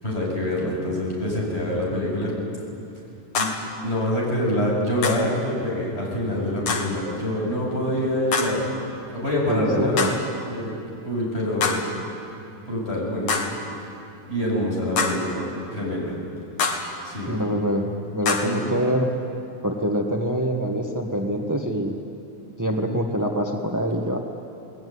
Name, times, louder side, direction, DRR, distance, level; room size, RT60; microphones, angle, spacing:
voice 1, 0.0-2.3 3.4-3.5 3.8-8.7 9.1-10.1 10.4-10.7 11.0-12.0 12.7-13.5 14.2-15.4 15.7-16.2 17.0-17.4 18.4-18.8, left 1 dB, 20° left, -4 dB, 8.0 m, -25 dB
sound 1, 3.4-3.7 5.0-5.3 6.7-7.0 8.3-8.7 10.0-10.3 11.6-12.0 13.3-13.7 15.0-15.4 16.6-17.0 18.3-18.7, left 4 dB, 65° left, 3.1 m, -26 dB
voice 2, 9.5-10.1 17.3-19.1 19.6-21.9 22.6-24.2, equal, 20° right, 1 dB, 0.5 m, -25 dB
28.0 x 20.0 x 9.6 m, 2.7 s
omnidirectional pair, 3.3 m